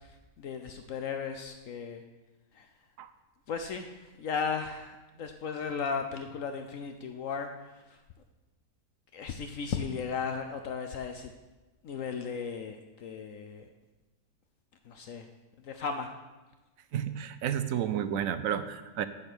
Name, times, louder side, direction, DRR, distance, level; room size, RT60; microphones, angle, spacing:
voice 1, 0.4-2.0 2.6-2.7 3.5-3.9 4.2-7.5 9.1-11.3 11.8-13.7 14.9-15.3 15.6-16.1, left 6 dB, 65° left, 6 dB, 1.0 m, -35 dB
voice 2, 16.9-19.1, right 9 dB, 70° right, 12 dB, 0.9 m, -31 dB
8.6 x 7.7 x 6.1 m, 1.1 s
omnidirectional pair, 1.6 m